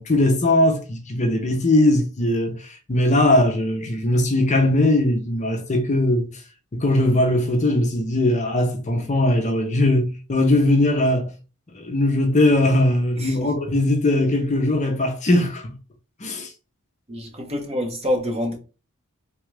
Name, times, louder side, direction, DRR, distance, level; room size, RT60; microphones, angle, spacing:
voice 1, 0.0-6.3 6.7-11.3 11.7-15.7 16.2-16.5, left 1 dB, 35° left, 0.6 m, -20 dB
voice 2, 13.2-13.5 17.1-18.6, left 1 dB, 30° right, 0.8 m, -27 dB
3.6 x 2.3 x 3.1 m
head